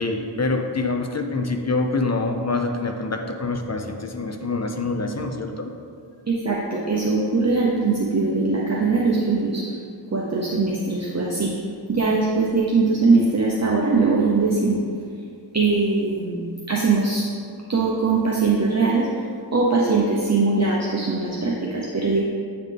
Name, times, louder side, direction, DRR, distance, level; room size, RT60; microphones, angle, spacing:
voice 1, 0.0-5.7, left 3 dB, 35° left, 4 dB, 0.5 m, -25 dB
voice 2, 6.3-9.6 10.1-11.5 11.9-14.8 15.5-16.4 16.7-17.2 17.7-19.1 19.5-22.2, right 3 dB, 35° right, -4 dB, 0.7 m, -21 dB
8.4 x 4.0 x 3.3 m, 2.3 s
wide cardioid pair, 70°, 46 cm